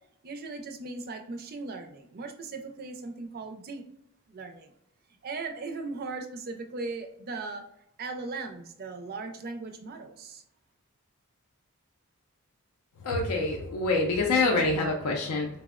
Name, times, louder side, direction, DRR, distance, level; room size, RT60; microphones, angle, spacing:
voice 1, 0.2-3.8 4.3-4.7 5.2-7.7 8.0-10.4, right 3 dB, 40° right, 5 dB, 0.4 m, -38 dB
voice 2, 13.0-15.5, left 3 dB, 75° left, 0 dB, 0.4 m, -26 dB
4.1 x 2.0 x 2.3 m, 0.74 s
head